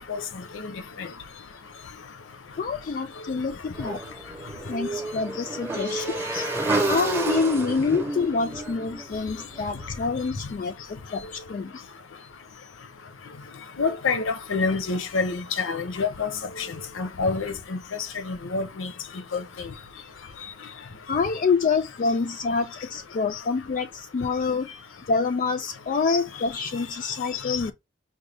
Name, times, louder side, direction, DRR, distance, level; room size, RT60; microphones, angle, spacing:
voice 1, 2.6-4.0 4.7-6.2 6.9-11.8 21.1-24.7 25.1-27.7, left 4 dB, 45° left, 0.3 m, -27 dB
Motorcycle / Engine, 3.8-9.9, right 2 dB, 10° right, 0.7 m, -30 dB
voice 2, 13.8-16.3 16.6-17.8 18.2-18.9 19.3-19.7 26.1-26.2 27.5-27.6, left 4 dB, 85° left, 0.7 m, -27 dB
5.2 x 2.2 x 3.3 m
head